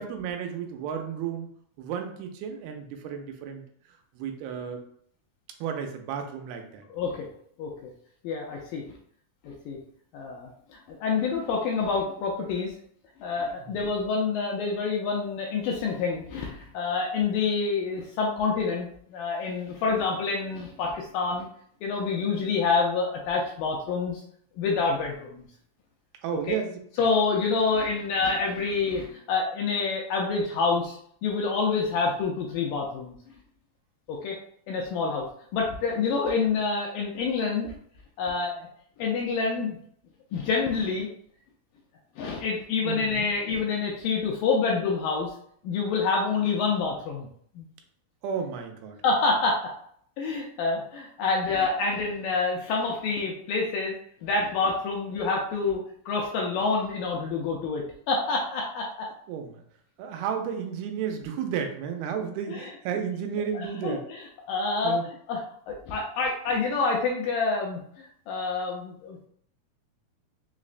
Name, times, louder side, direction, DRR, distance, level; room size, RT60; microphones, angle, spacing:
voice 1, 0.0-1.5 1.8-3.6 4.2-4.8 5.6-6.8 13.6-13.8 26.2-26.8 42.9-43.3 48.2-49.0 59.3-59.6 60.0-64.0 64.8-65.0, right 7 dB, 85° right, 4 dB, 2.4 m, -32 dB
voice 2, 6.9-7.3 7.6-7.9 8.2-8.8 9.4-9.8 10.1-12.7 13.2-21.5 21.8-24.2 24.6-25.5 26.5-26.6 27.0-33.2 34.1-34.4 34.7-35.3 35.5-37.7 38.2-38.7 39.0-39.8 40.3-41.1 42.2-45.3 45.6-47.3 47.6-47.7 49.0-49.6 50.2-54.0 54.2-59.1 62.5-62.7 63.5-69.3, left 4 dB, 80° left, -1 dB, 2.0 m, -27 dB
5.8 x 2.0 x 2.4 m, 0.63 s
omnidirectional pair, 4.3 m